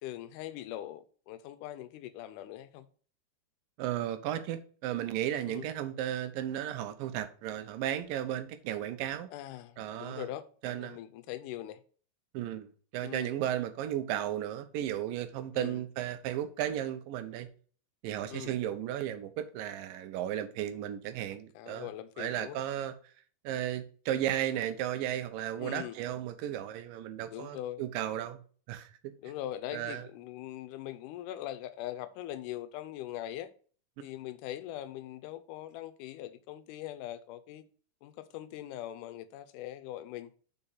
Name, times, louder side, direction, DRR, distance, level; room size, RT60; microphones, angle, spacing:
voice 1, 0.0-2.9 5.5-5.6 9.3-11.8 13.0-13.3 15.5-15.8 18.3-18.6 21.6-22.6 25.6-26.0 27.3-27.8 29.2-33.5 34.0-37.6 38.0-40.3, left 13 dB, 75° left, 2.1 m, -41 dB
voice 2, 3.8-9.3 9.8-10.3 10.6-11.0 12.3-17.5 18.0-21.9 22.2-22.9 23.4-28.4 28.7-28.9 29.7-30.1, right 11 dB, 85° right, 2.4 m, -34 dB
5.4 x 4.9 x 5.6 m
omnidirectional pair, 3.9 m